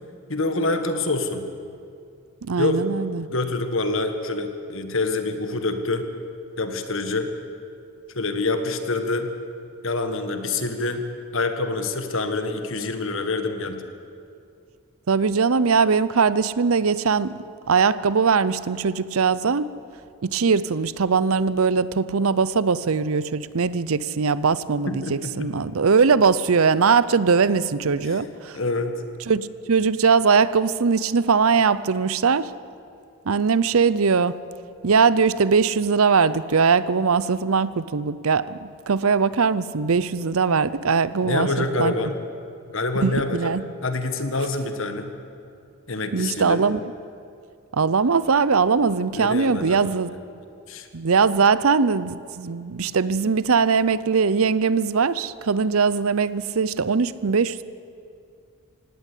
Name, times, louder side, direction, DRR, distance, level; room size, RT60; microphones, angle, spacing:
voice 1, 0.3-1.5 2.6-2.8 3.3-6.1 6.6-7.3 8.1-9.3 9.8-11.0 11.3-13.8 24.9-25.5 28.0-28.2 28.5-28.9 41.2-42.2 42.7-43.5 43.8-45.1 45.9-46.6 49.1-50.0 50.7-50.9, left 3 dB, 65° left, 7 dB, 1.7 m, -26 dB
voice 2, 2.4-3.3 15.1-17.3 17.7-19.7 20.2-28.6 29.3-32.5 33.3-34.4 34.8-38.6 38.9-41.9 43.0-43.6 46.1-46.8 47.7-50.1 50.9-57.6, right 5 dB, 75° right, 17 dB, 0.6 m, -21 dB
18.5 x 17.0 x 8.4 m, 2.4 s
head